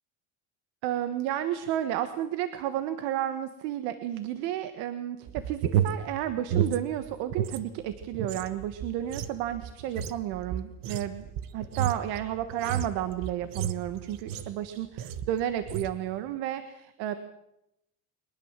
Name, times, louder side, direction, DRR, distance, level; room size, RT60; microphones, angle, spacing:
voice 1, 0.8-11.3 11.5-17.1, right 11 dB, 80° right, 10 dB, 1.6 m, -32 dB
sound 1, 5.2-7.6 7.9-14.6 15.0-15.3 15.6-16.0, right 9 dB, 60° right, 1.5 m, -32 dB
23.0 x 20.5 x 7.5 m, 0.85 s
cardioid pair, 165°, 38 cm